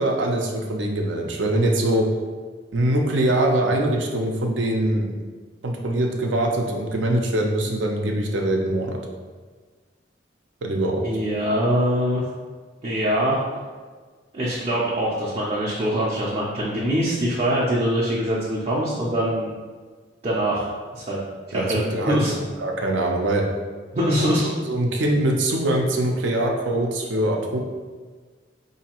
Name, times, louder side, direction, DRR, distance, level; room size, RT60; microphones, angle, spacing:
voice 1, 0.0-2.1 2.7-5.1 5.6-9.0 10.6-11.0 21.5-22.2 22.6-23.4 24.7-27.6, right 1 dB, 80° right, 1 dB, 0.6 m, -23 dB
voice 2, 11.0-12.2 12.8-13.4 14.3-19.5 20.2-20.7 20.9-21.2 21.5-21.8 22.1-22.3 23.9-24.5, equal, 35° right, -6 dB, 0.5 m, -23 dB
4.0 x 2.7 x 2.9 m, 1.5 s
head